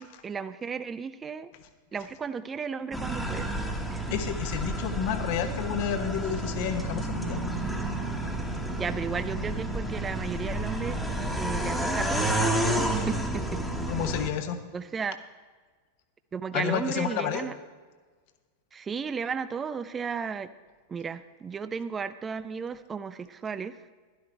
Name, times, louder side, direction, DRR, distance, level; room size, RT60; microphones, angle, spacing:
voice 1, 0.0-1.5 1.9-3.5 3.9-4.1 8.8-11.0 11.3-12.3 12.9-13.6 14.7-15.2 16.3-17.5 18.7-20.5 20.9-23.8, right 6 dB, 20° right, 14 dB, 0.4 m, -34 dB
sound 1, 2.9-14.3, right 1 dB, ahead, 1.4 m, -30 dB
voice 2, 4.1-7.4 13.9-14.6 16.5-17.5, left 8 dB, 45° left, 8 dB, 1.1 m, -30 dB
12.0 x 11.5 x 4.4 m, 1.4 s
figure-of-eight pair, 90°, 0 cm